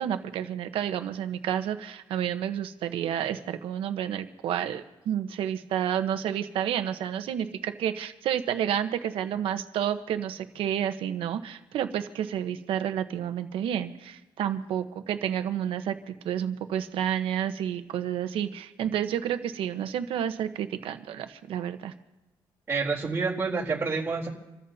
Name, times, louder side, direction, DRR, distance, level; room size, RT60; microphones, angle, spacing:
voice 1, 0.0-21.9, right 10 dB, 85° right, 9 dB, 1.1 m, -30 dB
voice 2, 22.7-24.3, right 4 dB, 25° right, -3 dB, 3.7 m, -28 dB
27.5 x 14.0 x 2.9 m, 1.0 s
cardioid pair, 90°, 9 cm